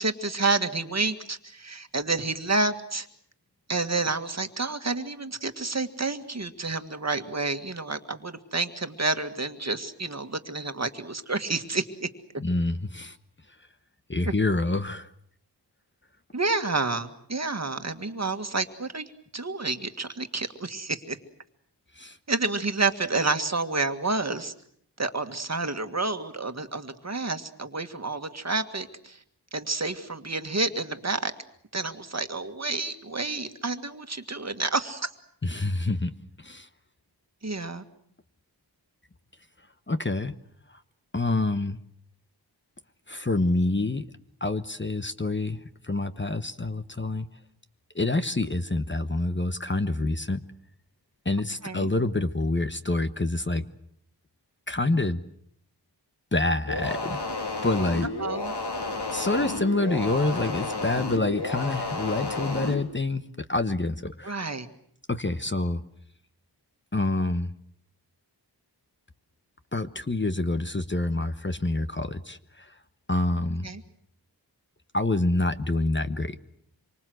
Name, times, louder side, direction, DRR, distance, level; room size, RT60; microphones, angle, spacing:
voice 1, 0.0-3.1 3.7-12.1 14.3-14.4 16.3-21.2 22.3-24.5 25.0-29.2 29.5-31.3 31.7-35.1 37.4-37.8 51.6-51.9 58.2-58.5 64.2-64.7 73.6-73.8, right 3 dB, 40° right, 8 dB, 1.9 m, -29 dB
voice 2, 12.4-13.2 14.1-15.1 22.0-22.2 35.4-36.1 36.4-36.7 39.9-40.3 41.1-41.8 43.1-44.1 44.4-47.3 47.9-50.4 51.2-53.7 54.7-55.2 56.3-57.2 57.6-58.1 59.1-64.3 65.1-65.8 66.9-67.5 69.7-72.7 73.1-73.7 74.9-76.4, left 2 dB, 25° left, 10 dB, 1.1 m, -27 dB
sound 1, 56.7-62.8, left 2 dB, 75° left, 3.5 m, -31 dB
27.0 x 24.5 x 7.9 m, 0.68 s
wide cardioid pair, 90°, 41 cm